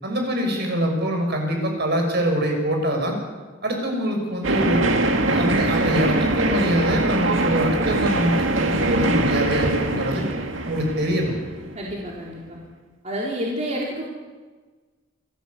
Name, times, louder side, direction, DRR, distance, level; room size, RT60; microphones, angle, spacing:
voice 1, 0.0-3.2 3.6-4.8 5.3-10.2 10.6-11.3, equal, 60° right, 2 dB, 6.3 m, -24 dB
sound 1, 4.4-12.1, right 2 dB, 90° right, 2.2 m, -23 dB
voice 2, 11.7-12.6 13.0-14.1, equal, 35° right, -3 dB, 3.7 m, -29 dB
27.5 x 13.5 x 8.3 m, 1.4 s
head